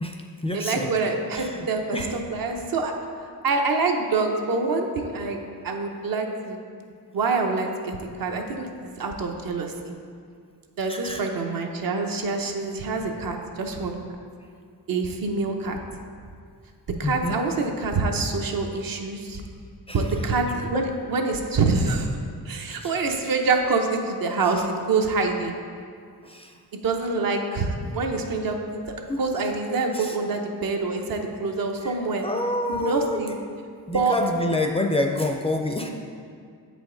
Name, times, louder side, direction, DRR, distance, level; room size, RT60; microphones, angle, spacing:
voice 1, 0.0-0.9 1.3-1.7 1.9-2.2 10.9-11.2 17.0-17.4 19.9-20.5 22.7-22.9 26.2-26.5 29.1-29.2 29.9-30.2 31.8-32.0 32.2-33.4 33.9-35.9, left 1 dB, 15° left, 3 dB, 0.4 m, -28 dB
voice 2, 0.5-2.9 3.4-5.4 5.6-6.6 7.1-9.9 10.8-14.0 14.9-15.8 17.0-19.4 19.9-22.1 22.5-25.6 26.8-28.6 29.2-32.2 32.7-33.3 33.9-34.1, right 3 dB, 65° right, 3 dB, 0.8 m, -26 dB
7.6 x 5.1 x 3.8 m, 2.2 s
wide cardioid pair, 115°, 38 cm